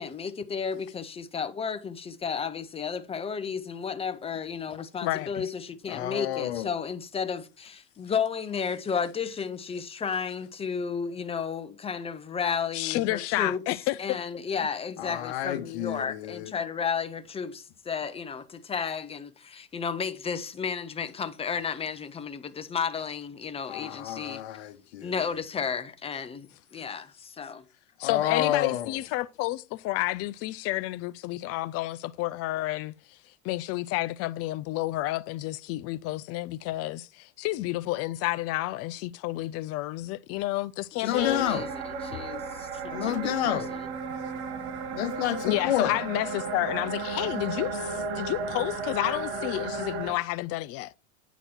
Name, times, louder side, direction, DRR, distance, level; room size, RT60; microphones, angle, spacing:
voice 1, 0.0-13.6 14.0-24.4 25.0-27.6 41.0-43.9, left 6 dB, 20° left, 0.8 m, -33 dB
voice 2, 5.0-5.4 12.7-14.0 28.0-32.9 33.4-41.5 45.4-50.9, left 17 dB, 45° left, 0.5 m, -30 dB
voice 3, 5.9-6.7 15.0-16.5 23.7-25.1 28.0-29.0 41.0-41.7 42.9-43.7 44.9-46.0, left 12 dB, 75° left, 1.0 m, -30 dB
sound 1, 41.2-50.1, right 4 dB, 75° right, 1.7 m, -34 dB
9.2 x 4.1 x 4.4 m
hypercardioid pair, 100°, 33 cm